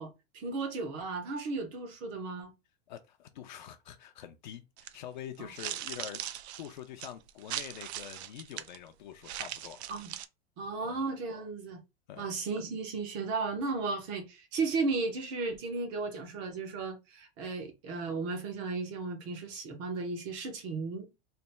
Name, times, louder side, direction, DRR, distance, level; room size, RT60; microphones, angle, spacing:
voice 1, 0.0-2.5 5.4-5.5 9.9-10.1 10.6-11.8 12.2-21.1, right 3 dB, 15° right, 0.4 m, -35 dB
voice 2, 2.9-9.9 10.8-11.0 12.1-12.3, left 10 dB, 45° left, 0.5 m, -46 dB
sound 1, 4.8-5.0 5.5-8.8 9.2-10.3, right 12 dB, 90° right, 0.5 m, -40 dB
3.3 x 2.3 x 4.0 m
supercardioid pair, 180°, 32 cm